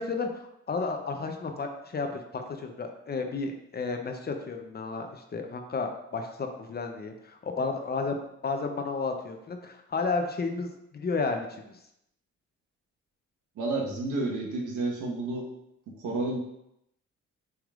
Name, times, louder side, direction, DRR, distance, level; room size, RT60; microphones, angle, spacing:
voice 1, 0.0-11.8, left 4 dB, 35° left, 5 dB, 0.6 m, -32 dB
voice 2, 13.6-15.5 15.9-16.4, right 2 dB, 80° right, -2 dB, 1.3 m, -30 dB
6.1 x 3.5 x 2.4 m, 0.80 s
cardioid pair, 90°, 30 cm